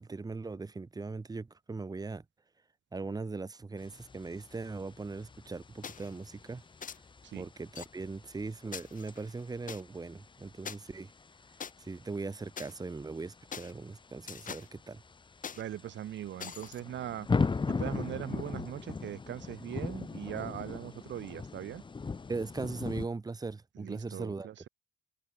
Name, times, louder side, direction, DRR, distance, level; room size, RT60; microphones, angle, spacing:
voice 1, 0.0-2.2 2.9-6.6 7.3-11.1 11.8-15.0 22.3-24.5, right 3 dB, 20° right, 2.5 m, -39 dB
sound 1, 3.8-23.1, left 4 dB, 25° left, 2.3 m, -40 dB
sound 2, 5.8-6.1 6.8-7.0 7.8-7.9 8.7-9.8 10.7-10.8 11.6-11.7 12.6-12.7 13.5-13.7 14.3-14.7 15.4-15.6 16.4-16.8, left 7 dB, 45° left, 5.4 m, -42 dB
voice 2, 15.6-17.3 17.7-21.8 23.8-24.7, right 11 dB, 80° right, 2.9 m, -40 dB
cardioid pair, 145°, 19 cm